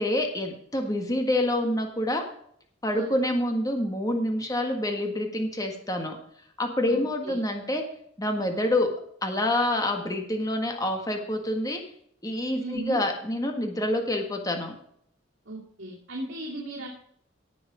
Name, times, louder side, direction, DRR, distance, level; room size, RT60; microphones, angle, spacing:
voice 1, 0.0-2.2 2.8-6.2 6.6-7.8 8.2-8.9 9.2-11.8 12.2-14.8, left 1 dB, 20° left, 3 dB, 1.5 m, -27 dB
voice 2, 6.9-7.4 12.6-13.0 15.4-16.9, right 1 dB, 75° right, -4 dB, 2.7 m, -36 dB
17.5 x 6.2 x 5.0 m, 0.65 s
head